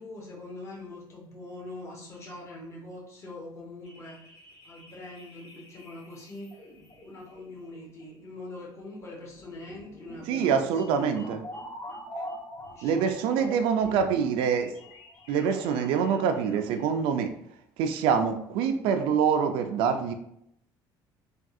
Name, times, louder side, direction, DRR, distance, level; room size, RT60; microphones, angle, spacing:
voice 1, 0.0-4.2 4.6-6.5 7.0-11.4 12.7-14.0, left 2 dB, 30° left, -3 dB, 1.0 m, -43 dB
sound 1, 3.8-17.2, left 1 dB, 50° left, 1.3 m, -46 dB
voice 2, 10.3-11.4 12.8-14.7 15.3-17.3 17.8-20.1, right 7 dB, 90° right, 6 dB, 0.4 m, -25 dB
3.4 x 2.3 x 2.6 m, 0.74 s
cardioid pair, 140°, 9 cm